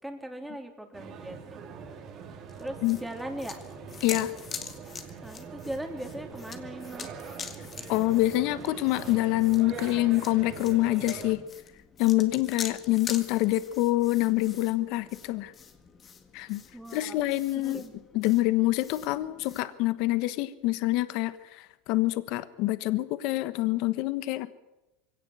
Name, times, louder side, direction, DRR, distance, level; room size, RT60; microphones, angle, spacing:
voice 1, 0.0-1.6 2.6-3.6 5.2-7.1 16.7-17.2 17.6-17.9, right 1 dB, 5° right, 3 dB, 3.3 m, -39 dB
sound 1, 0.9-11.3, right 6 dB, 40° right, 3.4 m, -43 dB
sound 2, 2.5-19.6, left 6 dB, 25° left, 1.9 m, -44 dB
voice 2, 7.9-11.4 12.0-15.5 16.3-16.6 16.9-17.8 18.1-24.5, left 17 dB, 55° left, 13 dB, 1.2 m, -26 dB
23.0 x 17.0 x 8.0 m, 0.97 s
supercardioid pair, 135°, 0 cm